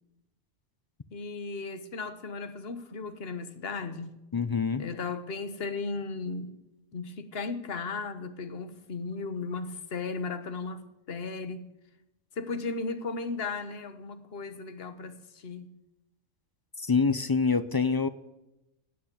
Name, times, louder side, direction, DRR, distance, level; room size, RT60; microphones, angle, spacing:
voice 1, 1.1-4.2 4.8-6.6 6.9-11.7 12.4-15.7, left 4 dB, 55° left, 1.3 m, -36 dB
voice 2, 4.3-4.8 16.8-18.1, left 5 dB, 35° left, 0.3 m, -26 dB
16.5 x 8.6 x 8.3 m
omnidirectional pair, 1.3 m